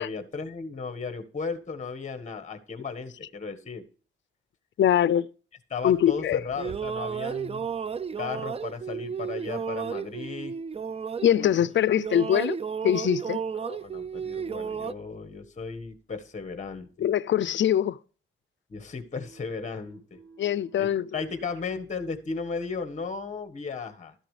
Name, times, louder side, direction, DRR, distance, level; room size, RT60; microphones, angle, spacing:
voice 1, 0.0-3.8 5.7-7.7 8.2-10.5 11.3-11.5 11.9-12.0 13.5-17.1 18.7-20.2 20.7-24.1, left 5 dB, 35° left, 1.5 m, -35 dB
voice 2, 4.8-5.3 5.8-6.4 11.2-12.6 12.8-13.4 17.0-18.0 20.4-21.1, left 10 dB, 60° left, 0.5 m, -23 dB
sound 1, 6.3-11.7 12.0-14.9, right 6 dB, 30° right, 0.5 m, -33 dB
Keyboard (musical), 19.1-21.9, right 5 dB, 80° right, 7.1 m, -53 dB
13.0 x 10.0 x 3.3 m
cardioid pair, 80°, 21 cm